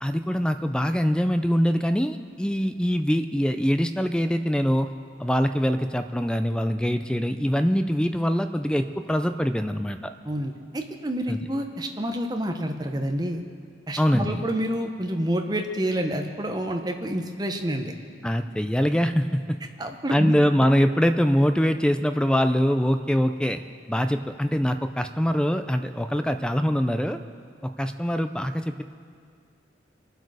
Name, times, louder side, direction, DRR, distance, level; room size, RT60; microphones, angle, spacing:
voice 1, 0.0-4.9 5.2-10.1 11.3-11.4 14.0-14.4 18.2-19.6 20.1-23.6 23.9-27.2 27.6-28.8, equal, 5° left, 8 dB, 0.4 m, -23 dB
voice 2, 10.2-13.4 13.9-17.9 19.8-20.3, equal, 20° right, 4 dB, 0.9 m, -28 dB
23.5 x 8.0 x 4.9 m, 2.2 s
head